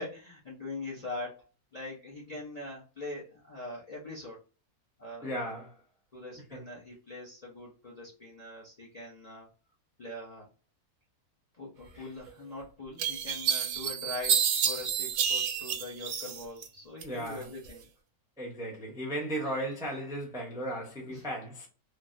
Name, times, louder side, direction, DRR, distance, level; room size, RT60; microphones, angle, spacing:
voice 1, 0.0-4.4 5.0-5.3 6.1-9.5 10.0-10.5 11.6-17.8 21.1-21.2, left 2 dB, 35° left, 0.7 m, -42 dB
voice 2, 5.2-5.8 6.4-6.6 11.9-12.1 17.0-17.5 18.4-21.7, right 1 dB, 5° right, 0.6 m, -36 dB
sound 1, 12.3-12.4 13.0-16.7 17.0-17.8, right 8 dB, 75° right, 1.0 m, -29 dB
3.3 x 2.1 x 2.5 m
omnidirectional pair, 1.6 m